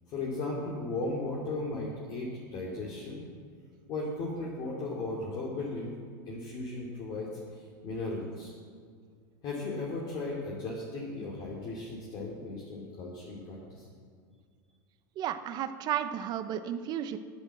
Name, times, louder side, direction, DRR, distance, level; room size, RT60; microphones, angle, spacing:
voice 1, 0.1-3.3 3.9-5.9 6.3-8.5 9.4-13.8, left 2 dB, 45° left, -4 dB, 2.8 m, -36 dB
voice 2, 15.2-17.2, right 10 dB, 40° right, 10 dB, 0.8 m, -33 dB
10.0 x 8.9 x 7.6 m, 2.1 s
supercardioid pair, 120°, 10 cm